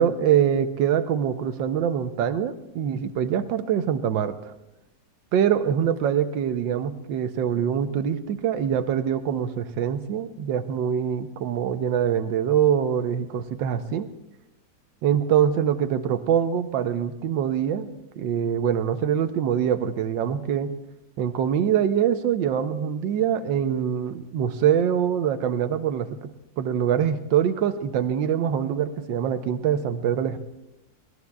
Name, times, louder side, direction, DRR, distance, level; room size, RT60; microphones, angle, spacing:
voice 1, 0.0-4.3 5.3-14.1 15.0-20.7 21.2-26.3 26.6-30.4, right 9 dB, 85° right, 10 dB, 1.5 m, -24 dB
24.0 x 17.5 x 2.4 m, 0.94 s
omnidirectional pair, 2.0 m